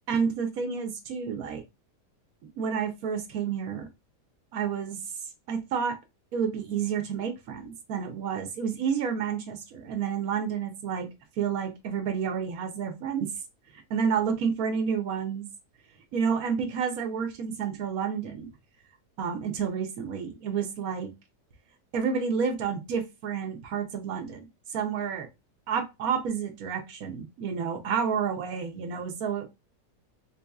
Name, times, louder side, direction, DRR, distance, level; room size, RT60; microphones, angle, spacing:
voice 1, 0.1-1.6 2.6-3.9 4.5-5.0 5.5-6.0 6.3-11.1 11.4-13.3 13.9-15.5 16.1-18.5 19.2-21.1 21.9-25.3 25.7-29.5, right 6 dB, 65° right, 6 dB, 1.0 m, -30 dB
3.8 x 2.7 x 2.2 m, 0.23 s
omnidirectional pair, 1.8 m